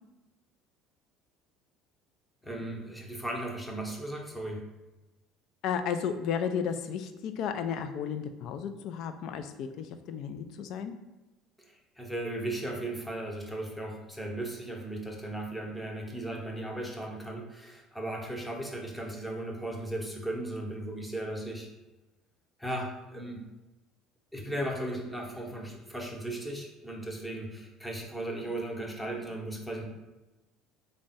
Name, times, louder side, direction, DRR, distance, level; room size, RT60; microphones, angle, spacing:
voice 1, 2.4-4.6 11.6-21.7 22.6-23.4 24.3-29.8, right 1 dB, 5° left, 0 dB, 0.8 m, -36 dB
voice 2, 5.6-10.9, left 7 dB, 65° left, 9 dB, 0.4 m, -33 dB
3.4 x 2.1 x 4.0 m, 1.1 s
supercardioid pair, 90°, 0 cm